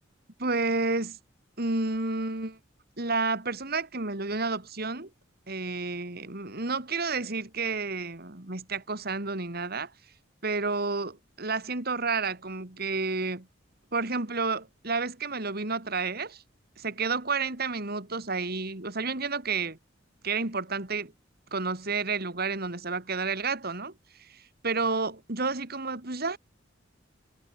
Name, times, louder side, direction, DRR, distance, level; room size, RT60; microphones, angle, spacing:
voice 1, 0.4-1.2 1.6-2.6 3.0-5.1 5.5-9.9 10.4-13.5 13.9-16.4 16.8-19.8 20.2-21.1 21.5-23.9 24.3-26.4, right 4 dB, 55° right, 3.1 m, -30 dB
head